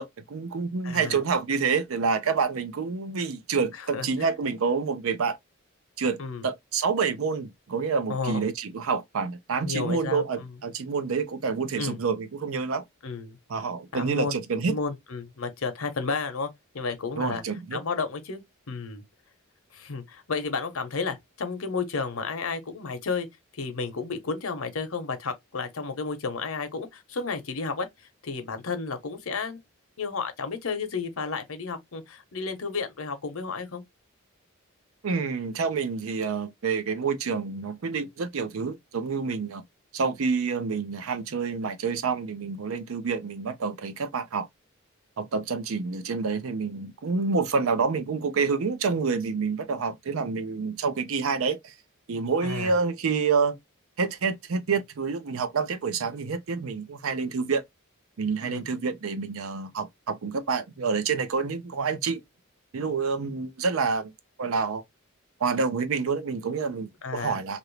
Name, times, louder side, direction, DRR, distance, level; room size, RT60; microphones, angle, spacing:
voice 1, 0.0-5.4 6.0-12.8 13.5-14.8 17.2-17.8 35.0-39.6 39.9-44.5 45.2-51.7 52.1-53.6 54.0-57.6 58.2-62.2 62.7-64.1 64.4-64.8 65.4-67.6, right 5 dB, 70° right, 0.5 m, -28 dB
voice 2, 0.8-1.2 3.8-4.1 6.2-6.5 8.1-8.4 9.6-10.5 11.8-12.0 13.0-13.4 13.9-14.4 14.6-16.5 16.7-17.4 17.7-18.4 18.7-19.0 19.7-23.3 23.5-27.9 28.2-29.6 30.0-33.8 52.4-52.7 58.4-58.6 67.0-67.4, left 4 dB, 70° left, 0.8 m, -32 dB
2.9 x 2.5 x 3.1 m
head